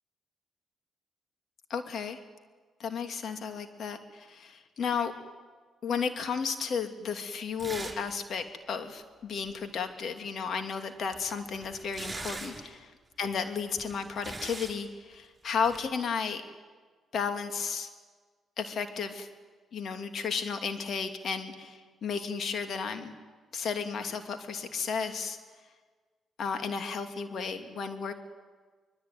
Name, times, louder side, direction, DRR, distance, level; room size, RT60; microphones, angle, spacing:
voice 1, 1.7-2.2 2.8-5.1 5.8-12.9 13.2-16.4 17.1-17.9 18.6-19.3 19.7-23.1 23.5-25.4 26.4-28.1, left 6 dB, 60° left, 6 dB, 2.8 m, -33 dB
sound 1, 7.6-8.1 8.4-8.5 10.9-12.7 13.6-14.8 15.6-15.9, right 3 dB, 25° right, 6.9 m, -41 dB
25.0 x 21.0 x 9.4 m, 1.4 s
supercardioid pair, 55°, 0 cm